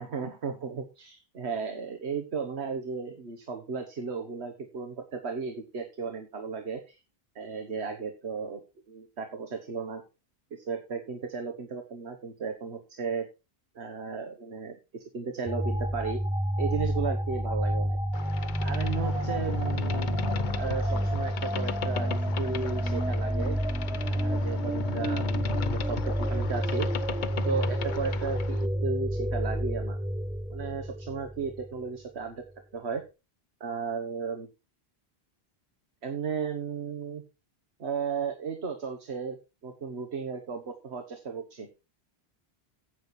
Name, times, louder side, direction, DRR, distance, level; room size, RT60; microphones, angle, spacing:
voice 1, 0.0-7.0 7.3-8.6 8.9-10.0 10.5-13.3 13.7-16.2 16.6-18.0 18.6-20.1 20.6-23.6 24.0-26.9 27.4-30.0 30.5-32.4 32.7-33.0 33.6-34.5 36.0-37.2 37.8-39.4 39.6-41.7, right 5 dB, 85° right, 5 dB, 1.5 m, -35 dB
sound 1, 15.5-31.8, equal, 10° right, 0.3 m, -29 dB
Boat Water vehicle, 18.1-28.7, left 7 dB, 50° left, 0.8 m, -37 dB
9.4 x 8.4 x 4.3 m, 0.29 s
omnidirectional pair, 1.1 m